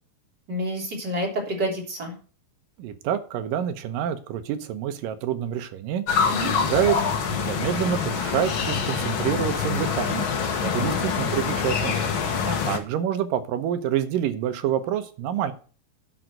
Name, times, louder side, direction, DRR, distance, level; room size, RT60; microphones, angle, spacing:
voice 1, 0.5-2.1 6.3-6.5 10.6-10.9 12.4-12.6, equal, 30° right, 0 dB, 3.4 m, -29 dB
voice 2, 2.8-6.0 6.5-7.0 7.3-10.3 10.6-12.0 12.7-15.5, right 10 dB, 75° right, 9 dB, 2.5 m, -27 dB
sound 1, 6.1-12.8, left 6 dB, 70° left, 1.2 m, -25 dB
10.5 x 5.3 x 7.8 m, 0.39 s
omnidirectional pair, 4.3 m